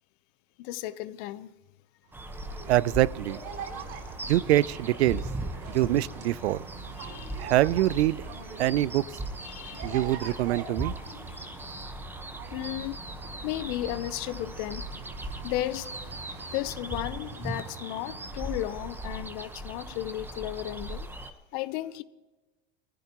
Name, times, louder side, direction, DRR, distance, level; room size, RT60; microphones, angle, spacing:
voice 1, 0.6-1.5 7.0-7.4 9.4-9.9 11.3-11.6 12.5-13.0 13.4-14.8 15.4-15.9 16.5-21.1 21.5-22.0, left 15 dB, 55° left, 0.8 m, -34 dB
sound 1, 2.1-21.3, right 1 dB, 5° right, 1.1 m, -39 dB
sound 2, 2.1-20.6, right 4 dB, 60° right, 5.3 m, -44 dB
voice 2, 2.7-3.4 4.3-5.2 5.7-6.6 7.4-8.2 8.6-9.2 9.8-10.9, right 15 dB, 90° right, 0.5 m, -24 dB
19.5 x 15.0 x 3.0 m
supercardioid pair, 120°, 32 cm